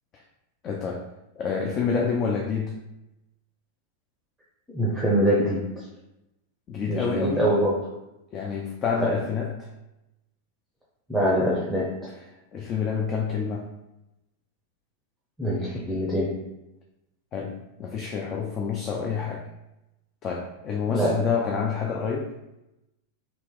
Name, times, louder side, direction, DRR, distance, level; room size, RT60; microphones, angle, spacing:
voice 1, 0.6-1.1 1.4-2.8 6.7-7.4 8.3-9.7 12.5-13.7 17.3-19.5 20.2-22.3, left 6 dB, 30° left, 0 dB, 0.4 m, -28 dB
voice 2, 4.7-5.6 6.9-7.8 9.0-9.1 11.1-12.0 15.4-16.4 20.9-21.2, equal, 5° right, -5 dB, 0.8 m, -24 dB
3.0 x 2.9 x 3.6 m, 0.93 s
figure-of-eight pair, 90°, 0 cm